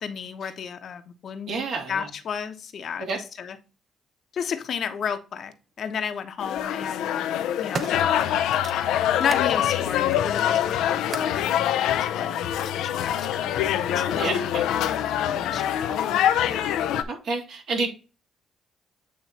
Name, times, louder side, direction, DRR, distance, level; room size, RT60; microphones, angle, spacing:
voice 1, 0.0-1.5 1.9-3.1 3.4-3.6 4.3-8.4 9.2-10.8 11.2-12.5 12.7-15.1 15.3-16.8, left 7 dB, 60° left, 8 dB, 1.0 m, -33 dB
voice 2, 1.5-2.1 3.0-3.2 14.2-14.7 17.1-17.9, right 3 dB, 65° right, 1 dB, 3.0 m, -29 dB
sound 1, 5.1-5.2 6.3-6.7 7.2-9.5 9.9-11.4 12.3-12.4, right 4 dB, 45° right, 1.0 m, -38 dB
sound 2, 6.4-17.0, left 10 dB, 90° left, 0.6 m, -24 dB
8.7 x 3.1 x 4.2 m, 0.32 s
cardioid pair, 90°, 0 cm